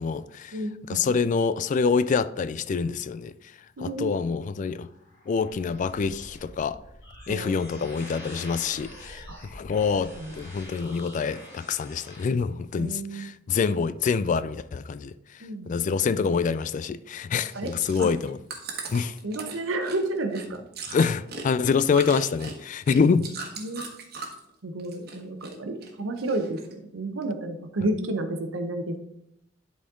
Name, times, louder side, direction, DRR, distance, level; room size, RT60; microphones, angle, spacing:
voice 1, 0.0-0.6 0.9-3.3 3.8-4.9 5.3-6.8 7.3-9.2 9.5-15.1 15.7-18.4 18.9-19.2 20.9-23.3, left 5 dB, 40° left, 0.3 m, -26 dB
voice 2, 0.5-1.0 3.8-4.1 7.3-7.9 9.3-9.4 10.1-10.3 12.8-13.3 15.4-15.7 17.5-17.7 18.0-18.1 19.2-20.6 23.3-23.9 24.6-29.0, right 2 dB, 85° right, 0.9 m, -31 dB
sound 1, 4.6-12.3, left 1 dB, 65° left, 2.9 m, -46 dB
Chewing mastication, 17.4-24.5 24.8-25.5 25.8-26.7 27.2-27.3, right 4 dB, 55° right, 1.3 m, -39 dB
11.5 x 4.2 x 3.7 m
head